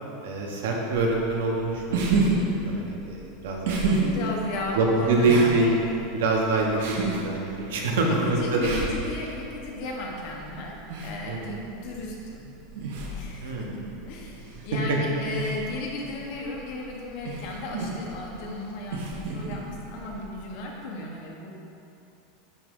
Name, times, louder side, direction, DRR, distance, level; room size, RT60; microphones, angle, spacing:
voice 1, 0.2-2.1 2.4-3.8 4.7-5.7 6.1-8.7 11.3-11.4 13.4-13.8 14.7-15.0, right 3 dB, 90° right, -1 dB, 1.2 m, -25 dB
sound 1, 1.1-20.6, right 3 dB, 70° right, 1.0 m, -32 dB
voice 2, 4.0-5.7 8.0-10.8 11.0-12.5 13.1-21.6, left 2 dB, 45° left, -1 dB, 1.1 m, -35 dB
10.5 x 3.6 x 3.7 m, 2.7 s
supercardioid pair, 170°, 0 cm